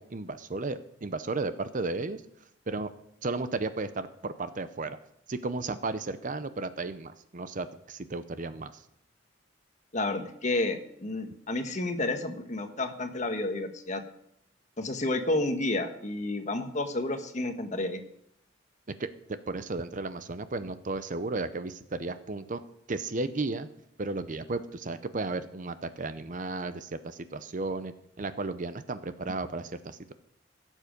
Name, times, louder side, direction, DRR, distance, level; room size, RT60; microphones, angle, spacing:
voice 1, 0.0-2.2 2.7-2.9 3.2-5.0 5.3-8.8 18.9-22.6 22.9-23.7 24.0-30.1, right 3 dB, 45° right, 12 dB, 0.7 m, -34 dB
voice 2, 9.9-14.0 14.8-18.0, left 2 dB, 40° left, 6 dB, 1.2 m, -30 dB
16.5 x 7.4 x 5.2 m, 0.75 s
head